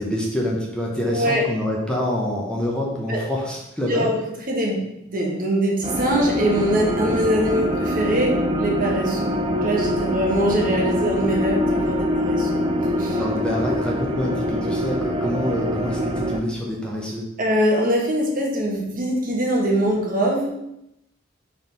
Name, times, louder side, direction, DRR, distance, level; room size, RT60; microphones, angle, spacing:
voice 1, 0.0-4.1 13.1-17.3, left 1 dB, 5° left, -3 dB, 1.0 m, -26 dB
voice 2, 1.1-1.4 3.1-3.2 3.9-4.2 4.5-12.6 13.0-13.2 17.4-20.5, equal, 45° right, -1 dB, 1.4 m, -23 dB
sound 1, 5.8-16.4, equal, 25° right, 0.6 m, -24 dB
4.7 x 4.0 x 5.3 m, 0.83 s
head